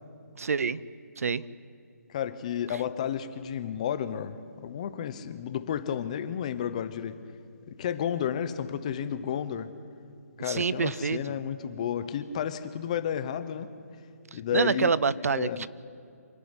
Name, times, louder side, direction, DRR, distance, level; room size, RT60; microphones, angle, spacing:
voice 1, 0.4-0.8 1.2-1.5 2.7-2.8 10.4-11.3 14.3-15.7, right 5 dB, 65° right, 18 dB, 0.7 m, -27 dB
voice 2, 2.1-4.4 4.6-7.2 7.7-9.7 10.4-13.7 14.3-14.9 15.3-15.7, left 9 dB, 25° left, 12 dB, 0.8 m, -32 dB
25.5 x 11.5 x 9.8 m, 2.5 s
hypercardioid pair, 170°, 9 cm